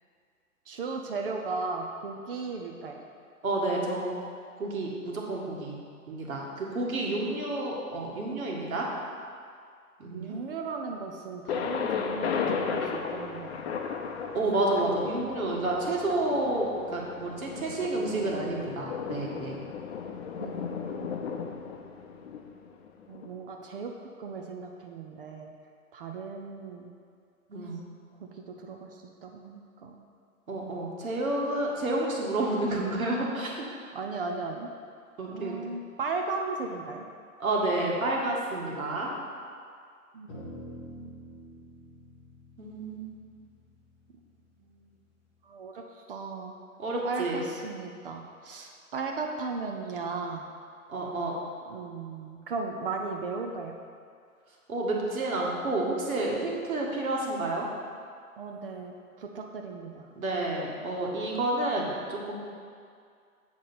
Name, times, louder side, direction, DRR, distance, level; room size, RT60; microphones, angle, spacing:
voice 1, 0.7-3.0 10.1-13.8 20.4-21.2 23.1-23.9 24.2-25.5 25.9-26.9 28.2-30.0 33.9-34.7 35.3-37.0 40.1-41.1 44.7-45.0 45.5-45.8 46.1-46.5 47.0-50.5 51.7-53.8 58.4-60.1, right 4 dB, 40° right, 2 dB, 0.6 m, -36 dB
voice 2, 3.4-4.2 4.6-5.8 6.1-8.9 10.0-10.4 14.3-19.6 27.5-27.8 30.5-33.7 35.2-35.5 37.4-39.1 42.6-43.1 46.8-47.5 50.9-51.3 54.7-57.7 60.2-62.3, right 2 dB, 65° right, -2 dB, 1.9 m, -30 dB
Thunder, 11.5-23.3, left 6 dB, 45° left, 0.7 m, -35 dB
sound 1, 40.3-44.8, equal, 10° left, 0.4 m, -47 dB
7.7 x 6.1 x 4.2 m, 2.2 s
figure-of-eight pair, 125°, 44 cm